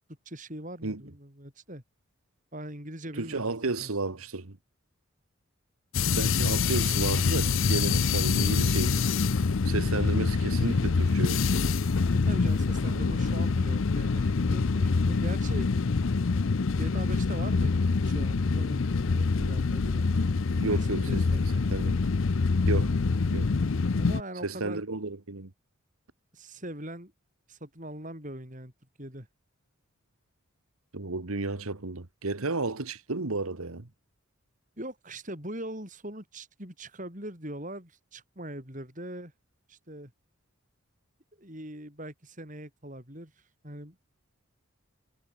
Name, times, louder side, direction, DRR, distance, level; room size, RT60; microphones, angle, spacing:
voice 1, 0.3-1.8 2.5-3.9 12.2-15.7 16.8-20.1 20.6-21.4 24.0-24.8 26.3-27.1 27.5-28.7 29.0-29.3 34.8-39.3 39.7-40.1 41.4-44.0, right 1 dB, 35° right, 7.6 m, -41 dB
voice 2, 3.2-4.6 6.2-9.0 9.6-11.4 20.6-21.2 21.7-22.1 22.6-22.9 23.3-23.5 24.4-25.5 30.9-33.9, right 3 dB, 80° right, 1.5 m, -32 dB
sound 1, 5.9-24.2, left 4 dB, 65° left, 0.6 m, -25 dB
head